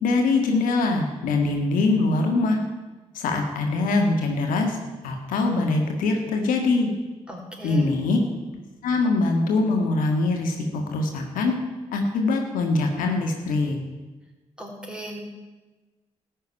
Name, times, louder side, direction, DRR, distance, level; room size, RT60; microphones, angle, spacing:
voice 1, 0.0-2.6 3.1-4.8 5.0-6.9 7.6-8.2 8.8-11.5 11.9-13.8, left 3 dB, 85° left, 3 dB, 1.6 m, -23 dB
voice 2, 7.3-7.9 14.6-15.2, right 1 dB, 5° right, -1 dB, 4.9 m, -37 dB
13.0 x 6.5 x 9.8 m, 1.2 s
supercardioid pair, 45°, 14 cm